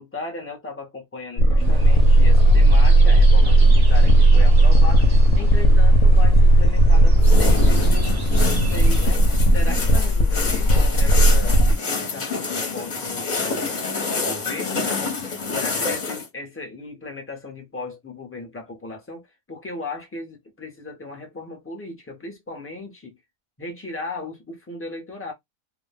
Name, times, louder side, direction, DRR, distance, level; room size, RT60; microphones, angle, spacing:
voice 1, 0.0-9.2 9.5-13.8 14.1-14.9 15.4-23.2 23.6-25.3, left 2 dB, 15° left, 0.5 m, -36 dB
sound 1, 1.4-11.8, right 1 dB, 70° left, 0.9 m, -15 dB
sound 2, 1.6-9.1, right 1 dB, 40° right, 0.6 m, -31 dB
sound 3, 7.2-16.3, left 4 dB, 40° left, 0.9 m, -28 dB
2.4 x 2.1 x 3.3 m
omnidirectional pair, 1.4 m